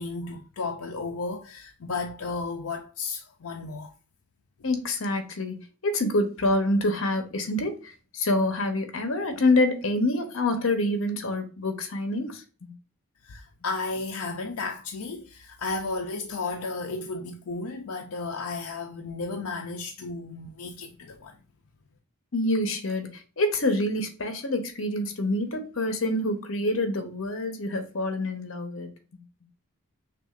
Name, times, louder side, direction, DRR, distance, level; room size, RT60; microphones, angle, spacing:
voice 1, 0.0-3.9 13.2-21.4, left 3 dB, 85° left, 0.5 m, -33 dB
voice 2, 4.6-12.7 22.3-29.2, left 1 dB, 65° left, 0.9 m, -27 dB
6.0 x 2.5 x 2.4 m
head